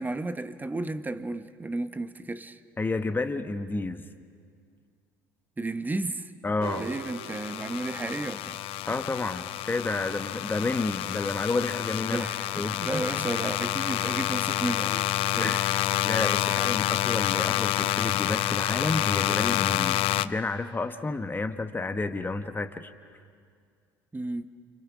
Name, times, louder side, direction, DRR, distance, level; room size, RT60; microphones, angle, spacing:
voice 1, 0.0-2.6 5.6-6.3 6.8-8.6 12.1-15.0 15.3-15.6 16.4-16.9 24.1-24.5, right 2 dB, 15° right, 1.2 m, -33 dB
voice 2, 2.8-4.0 6.4-6.9 8.9-12.3 12.5-13.0 15.4-15.7 16.0-22.9, left 3 dB, 20° left, 1.4 m, -30 dB
sound 1, 6.6-20.3, left 14 dB, 65° left, 0.6 m, -28 dB
sound 2, 6.6-10.4 11.4-11.5, right 8 dB, 50° right, 1.2 m, -45 dB
29.0 x 26.0 x 6.2 m
hypercardioid pair, 75°, 11 cm